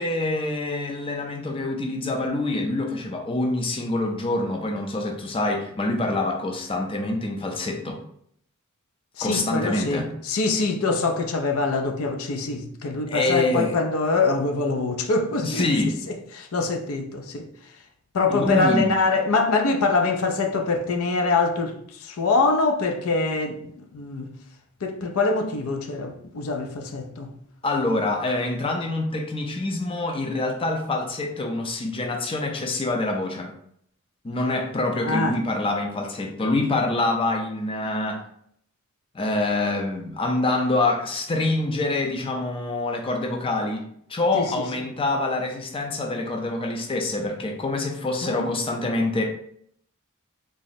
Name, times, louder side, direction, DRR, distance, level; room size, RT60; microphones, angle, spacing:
voice 1, 0.0-8.0 9.2-10.1 13.1-13.7 15.4-16.0 18.3-19.0 27.6-33.5 34.2-38.2 39.1-43.8 44.1-49.2, left 2 dB, 25° left, 0.5 m, -26 dB
voice 2, 9.2-15.7 16.3-17.5 18.1-24.3 24.8-27.3 35.0-35.4 44.3-44.5 48.2-48.5, left 3 dB, 75° left, 0.5 m, -24 dB
3.6 x 2.0 x 4.1 m
head